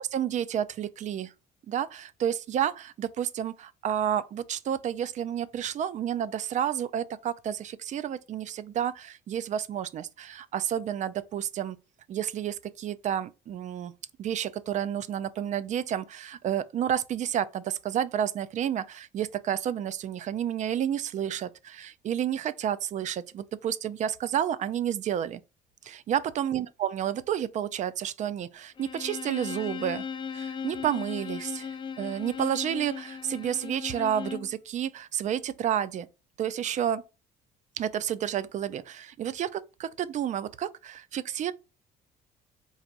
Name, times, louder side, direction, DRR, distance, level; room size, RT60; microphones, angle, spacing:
voice 1, 0.0-1.3 1.7-11.8 12.1-13.9 14.2-25.4 25.8-30.1 30.3-36.1 36.4-37.0 37.8-41.5, right 10 dB, 45° right, 0.4 m, -30 dB
Bowed string instrument, 28.8-34.6, left 6 dB, 30° left, 0.4 m, -37 dB
4.0 x 2.5 x 4.5 m
cardioid pair, 110°, 17 cm